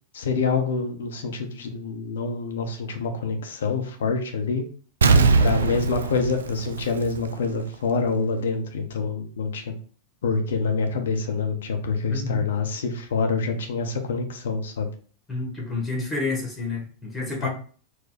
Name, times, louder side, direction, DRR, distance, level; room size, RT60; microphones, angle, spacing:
voice 1, 0.1-4.6 5.4-9.7 10.2-14.9 17.4-17.5, left 4 dB, 60° left, 5 dB, 0.8 m, -26 dB
Explosion, 5.0-7.6 8.0-8.1, right 4 dB, 70° right, 0.4 m, -21 dB
voice 2, 5.1-5.4 12.1-12.4 15.3-17.5, left 3 dB, 10° left, -1 dB, 1.6 m, -29 dB
4.3 x 2.3 x 4.0 m, 0.43 s
figure-of-eight pair, 90°, 0 cm